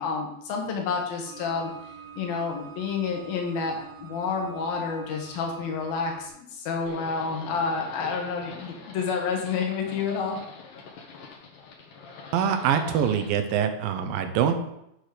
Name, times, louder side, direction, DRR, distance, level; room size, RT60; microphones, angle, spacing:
voice 1, 0.0-1.7 2.2-10.4, left 5 dB, 90° left, 1 dB, 3.3 m, -29 dB
sound 1, 1.3-6.3, right 7 dB, 60° right, 2.3 m, -46 dB
Livestock farm animals working animals, 6.9-13.3, left 4 dB, 70° left, 2.9 m, -44 dB
voice 2, 12.3-14.5, right 8 dB, 85° right, 7 dB, 2.6 m, -24 dB
9.3 x 5.9 x 5.0 m, 0.81 s
omnidirectional pair, 4.1 m